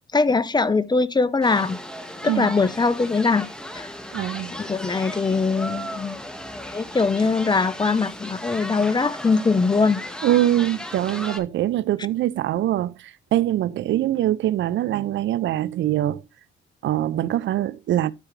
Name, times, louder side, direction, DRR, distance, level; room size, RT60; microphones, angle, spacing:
voice 1, 0.1-1.8 2.2-3.5 3.7-3.9 4.5-6.2 6.7-10.0, left 4 dB, 20° left, 0.7 m, -21 dB
sound 1, 1.4-11.4, equal, 5° left, 1.6 m, -36 dB
voice 2, 4.1-4.5 10.2-16.2 16.8-18.1, right 13 dB, 70° right, 0.5 m, -23 dB
12.5 x 4.8 x 3.2 m
cardioid pair, 90°, 20 cm